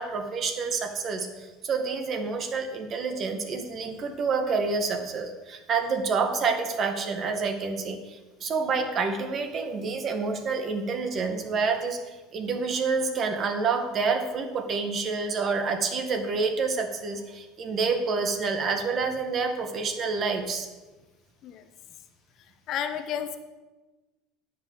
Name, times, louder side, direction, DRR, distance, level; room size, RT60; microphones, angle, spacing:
voice 1, 0.0-20.7, right 4 dB, 45° right, 5 dB, 1.8 m, -28 dB
voice 2, 22.7-23.4, left 9 dB, 55° left, 8 dB, 1.1 m, -31 dB
10.5 x 5.4 x 8.0 m, 1.2 s
hypercardioid pair, 80°, 0 cm